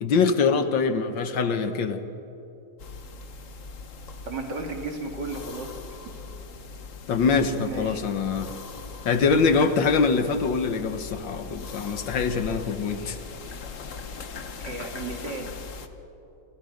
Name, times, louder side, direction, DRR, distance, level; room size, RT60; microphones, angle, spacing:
voice 1, 0.0-2.0 7.1-8.6 9.1-13.2, left 5 dB, 70° left, 8 dB, 1.9 m, -24 dB
sound 1, 2.8-15.9, left 4 dB, 45° left, 1.3 m, -40 dB
voice 2, 4.3-5.8 7.6-8.0 14.6-15.6, right 3 dB, 60° right, 3 dB, 2.9 m, -34 dB
29.5 x 25.5 x 5.2 m, 2.9 s
omnidirectional pair, 2.2 m